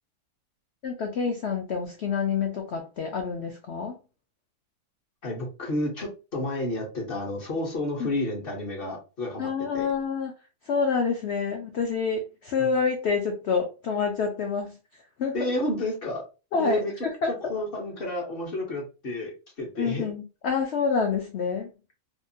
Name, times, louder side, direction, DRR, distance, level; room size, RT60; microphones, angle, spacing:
voice 1, 0.8-4.0 8.0-8.1 9.4-10.3 10.7-14.7 15.2-15.5 16.5-17.3 19.8-21.7, left 5 dB, 85° left, 3 dB, 0.5 m, -27 dB
voice 2, 5.2-9.9 12.6-12.7 15.3-16.2 16.6-20.1, left 1 dB, 50° left, -1 dB, 0.7 m, -31 dB
2.8 x 2.3 x 2.6 m, 0.32 s
omnidirectional pair, 1.7 m